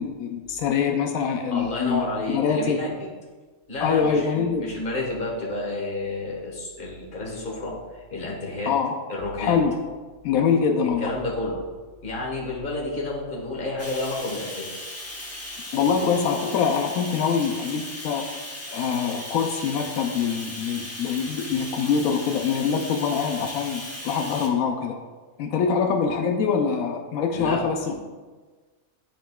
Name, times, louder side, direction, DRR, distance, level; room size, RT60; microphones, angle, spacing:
voice 1, 0.0-2.1 2.3-2.8 3.8-4.7 8.7-9.0 9.4-9.8 10.2-11.1 15.7-18.3 18.7-25.0 25.4-27.9, left 6 dB, 90° left, 4 dB, 1.0 m, -24 dB
voice 2, 1.5-3.1 3.7-8.7 9.1-9.6 11.0-11.6 12.0-14.8 15.8-16.1 27.3-27.6 27.9-28.0, left 2 dB, 40° left, -3 dB, 1.5 m, -30 dB
Bathtub (filling or washing), 13.8-24.5, left 1 dB, 15° left, 0.6 m, -37 dB
11.0 x 3.8 x 2.3 m, 1.4 s
omnidirectional pair, 1.4 m